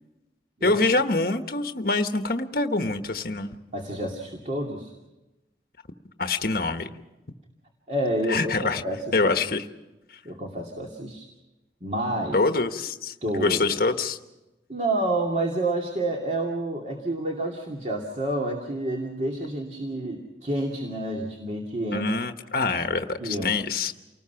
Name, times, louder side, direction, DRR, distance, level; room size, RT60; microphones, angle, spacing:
voice 1, 0.6-3.6 6.2-6.9 8.3-8.8 9.1-9.6 12.3-14.2 21.9-23.9, left 3 dB, 55° left, 7 dB, 1.1 m, -25 dB
voice 2, 3.7-4.9 7.9-9.1 10.2-11.3 11.8-12.4 13.2-13.6 14.7-22.1 23.2-23.6, right 1 dB, 40° right, 0 dB, 2.5 m, -29 dB
29.0 x 19.5 x 5.8 m, 1.0 s
head